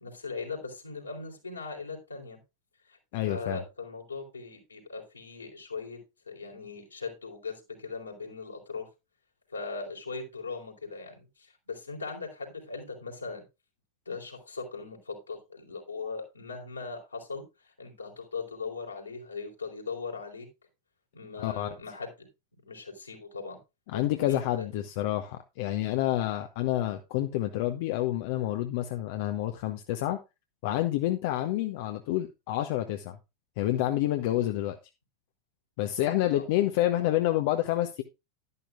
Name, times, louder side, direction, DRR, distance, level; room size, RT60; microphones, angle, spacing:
voice 1, 0.0-2.4 2.9-3.0 3.3-6.0 6.3-8.9 9.5-13.4 14.1-20.5 21.1-22.3 22.7-23.6 23.9-24.8 36.3-36.4, left 4 dB, 80° left, 3.9 m, -39 dB
voice 2, 3.1-3.6 21.4-21.7 23.9-30.2 30.6-33.2 33.6-34.8 35.8-38.0, left 14 dB, 50° left, 0.9 m, -28 dB
12.0 x 11.0 x 2.5 m
figure-of-eight pair, 90°, 0 cm